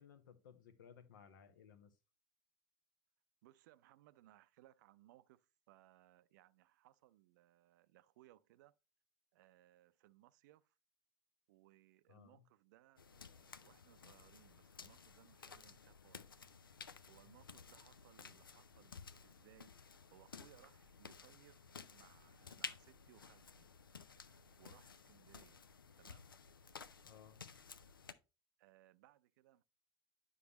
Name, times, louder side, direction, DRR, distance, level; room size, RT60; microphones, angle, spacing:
voice 1, 0.0-2.0 12.1-12.4 17.3-17.4 27.0-27.4, left 8 dB, 65° left, 1.0 m, -61 dB
voice 2, 3.4-8.8 9.3-10.8 11.5-16.3 16.7-23.7 24.2-25.7 26.0-26.3 28.6-29.6, right 15 dB, 60° right, 0.5 m, -67 dB
sound 1, 13.0-28.1, left 5 dB, 80° left, 0.5 m, -55 dB
9.6 x 5.8 x 2.9 m
figure-of-eight pair, 70°, 11 cm